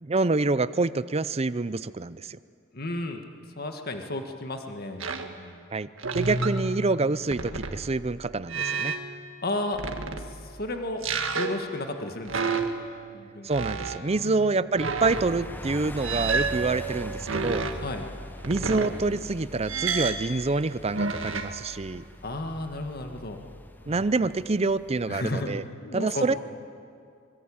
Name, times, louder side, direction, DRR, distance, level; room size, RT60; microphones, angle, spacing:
voice 1, 0.0-2.4 5.7-8.9 13.4-17.7 18.5-22.0 23.9-25.6 25.9-26.3, right 3 dB, 30° right, 15 dB, 0.6 m, -27 dB
voice 2, 2.7-3.2 3.6-5.6 9.4-9.8 10.2-11.0 11.4-12.4 13.1-13.5 14.1-14.6 17.1-17.6 17.8-18.1 22.2-23.4 23.9-24.1 25.1-26.4, left 2 dB, 50° left, 5 dB, 1.8 m, -34 dB
sound 1, 5.0-5.3 6.0-8.2 8.5-9.1 9.7-10.5 11.0-11.7 12.3-13.1 13.5-14.1 14.7-15.4 16.0-17.8 18.4-19.3 19.7-20.3 20.9-21.6, right 4 dB, 80° right, 1.8 m, -30 dB
sound 2, 15.0-25.5, equal, 10° left, 0.8 m, -42 dB
25.5 x 22.5 x 8.8 m, 2.3 s
head